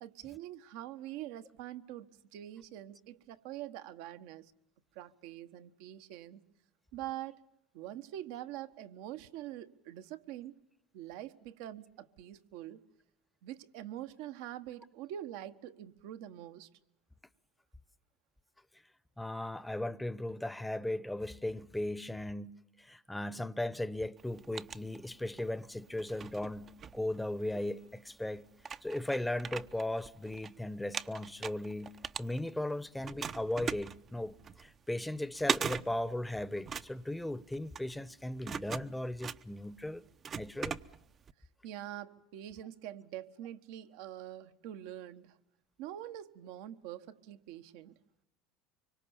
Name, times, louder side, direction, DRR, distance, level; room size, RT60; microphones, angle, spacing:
voice 1, 0.0-4.5 4.9-6.4 6.9-7.4 7.7-10.6 10.9-12.8 13.4-16.7 41.6-45.4 45.8-48.0, right 12 dB, 70° right, 1.3 m, -45 dB
voice 2, 19.2-28.5 28.8-31.9 32.2-40.0 40.3-40.8, left 1 dB, 5° left, 1.0 m, -37 dB
sound 1, 24.2-25.5 25.9-27.6 28.2-28.3 28.6-30.5 30.8-32.7 33.0-41.3, right 7 dB, 35° right, 0.8 m, -40 dB
25.0 x 24.0 x 7.2 m
hypercardioid pair, 85°, 0 cm